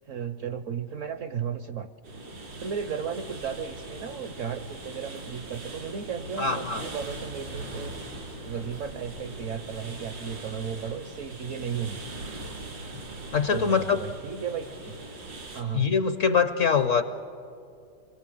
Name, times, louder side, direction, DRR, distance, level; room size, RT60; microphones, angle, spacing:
voice 1, 0.1-1.9 2.6-7.9 8.4-12.0 13.5-15.0 15.5-15.9, right 7 dB, 60° right, 10 dB, 0.9 m, -34 dB
sound 1, 2.0-15.6, right 2 dB, 85° right, 4.0 m, -40 dB
voice 2, 6.4-6.9 13.3-14.0 15.7-17.0, left 6 dB, 55° left, 10 dB, 0.9 m, -23 dB
26.5 x 22.0 x 7.8 m, 2.5 s
omnidirectional pair, 1.9 m